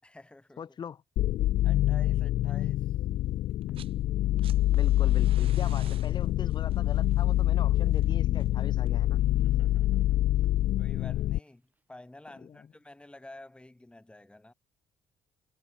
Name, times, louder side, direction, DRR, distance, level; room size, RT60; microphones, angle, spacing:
voice 1, 0.0-0.6 1.6-3.0 9.4-10.3 10.8-14.5, left 1 dB, 10° left, 6.9 m, -51 dB
voice 2, 0.6-1.0 4.7-9.2 12.4-12.6, left 7 dB, 45° left, 2.4 m, -40 dB
sound 1, 1.2-11.4, left 14 dB, 65° left, 0.4 m, -26 dB
Walk footsteps, 3.0-3.1 3.7-5.2 5.4-7.7 8.1-12.1 12.4-12.5, right 2 dB, 15° right, 6.6 m, -64 dB
sound 2, 3.5-4.0 4.2-9.1 10.4-10.5, right 11 dB, 60° right, 2.0 m, -54 dB
cardioid pair, 100°, 11 cm